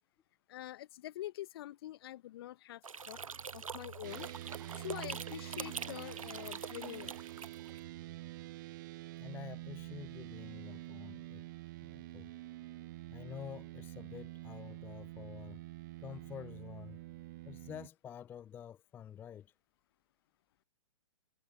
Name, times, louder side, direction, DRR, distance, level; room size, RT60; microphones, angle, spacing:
voice 1, 0.5-3.2 3.5-4.3 4.7-7.2, left 14 dB, 45° left, 1.1 m, -45 dB
sound 1, 2.8-7.8, right 5 dB, 85° right, 0.5 m, -45 dB
sound 2, 2.9-11.8, right 10 dB, 55° right, 2.1 m, -54 dB
sound 3, 4.0-17.9, right 18 dB, 35° right, 0.6 m, -47 dB
voice 2, 9.2-11.4 11.8-12.3 13.1-15.6 16.0-17.0 17.4-19.5, left 9 dB, 10° left, 0.4 m, -49 dB
figure-of-eight pair, 120°, 17 cm